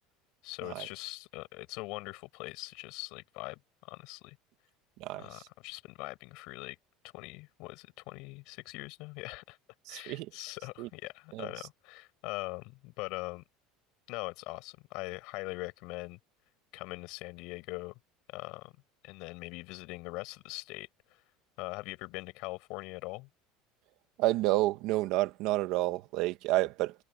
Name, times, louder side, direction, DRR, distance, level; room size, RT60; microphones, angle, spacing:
voice 1, 0.4-4.4 5.2-6.8 7.1-9.6 9.9-13.4 14.1-16.2 16.7-17.9 18.3-18.7 19.0-21.2 21.6-23.3, left 25 dB, 55° left, 7.8 m, -42 dB
voice 2, 5.0-5.5 9.9-10.3 10.8-10.9 11.3-11.5 24.2-27.0, right 18 dB, 50° right, 1.8 m, -30 dB
cardioid pair, 175°, 0 cm